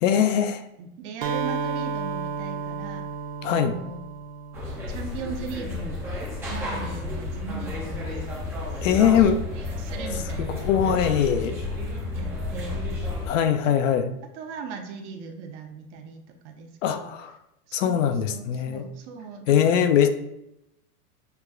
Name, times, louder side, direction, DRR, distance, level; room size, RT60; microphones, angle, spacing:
voice 1, 0.0-0.6 3.4-3.7 8.8-9.4 10.6-11.5 13.3-14.1 16.8-17.3 17.7-18.8 19.5-20.1, left 9 dB, 55° left, 9 dB, 0.5 m, -21 dB
voice 2, 0.8-3.1 3.5-4.0 4.9-6.1 6.5-8.3 8.7-10.9 12.1-12.8 13.6-13.7 14.3-17.1 17.7-20.1, right 5 dB, 50° right, 4 dB, 0.6 m, -39 dB
Acoustic guitar, 1.2-5.1, right 5 dB, 90° right, 0.6 m, -32 dB
sound 1, 4.5-13.3, left 2 dB, 5° right, 0.4 m, -31 dB
6.7 x 2.2 x 2.4 m, 0.83 s
hypercardioid pair, 110°, 47 cm